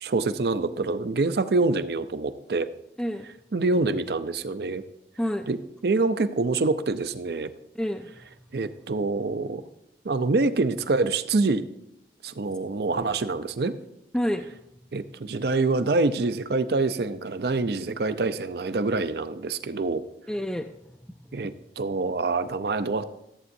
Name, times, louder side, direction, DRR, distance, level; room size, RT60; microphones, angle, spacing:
voice 1, 0.0-2.7 3.5-4.8 5.5-5.6 5.8-7.5 8.5-9.6 10.0-11.6 12.2-13.7 14.9-20.0 21.3-23.0, right 3 dB, 65° right, 11 dB, 0.5 m, -26 dB
voice 2, 3.0-3.3 5.2-5.5 7.7-8.1 14.1-14.5 20.3-20.7 21.3-21.5, equal, 5° left, 6 dB, 0.3 m, -28 dB
14.0 x 8.4 x 2.7 m, 0.84 s
head